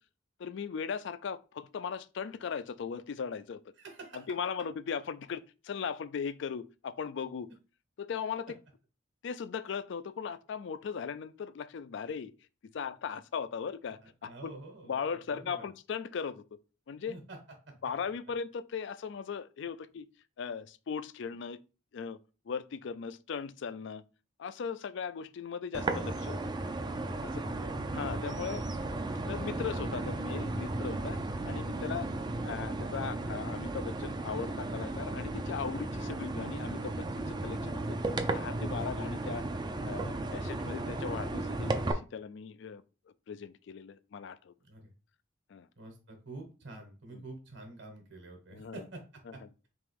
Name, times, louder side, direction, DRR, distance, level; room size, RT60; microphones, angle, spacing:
voice 1, 0.4-3.6 4.1-7.5 8.0-8.6 9.2-12.3 12.7-14.5 14.8-16.4 16.9-17.1 17.8-20.1 20.4-21.6 21.9-22.2 22.5-24.0 24.4-26.4 27.2-27.4 27.9-28.7 29.3-32.1 32.4-38.0 38.3-39.5 39.8-42.8 43.3-44.5 45.5-45.7 47.1-47.2 48.5-48.8 49.3-49.4, left 6 dB, 60° left, 0.3 m, -38 dB
voice 2, 3.8-4.3 12.7-12.8 14.2-15.7 17.1-17.4 27.4-27.8 31.7-32.3 36.2-36.3 44.6-44.9 45.8-49.0 49.3-49.4, right 2 dB, 60° right, 1.3 m, -48 dB
sound 1, 25.7-41.9, right 2 dB, 20° right, 0.4 m, -35 dB
3.6 x 2.9 x 4.7 m
head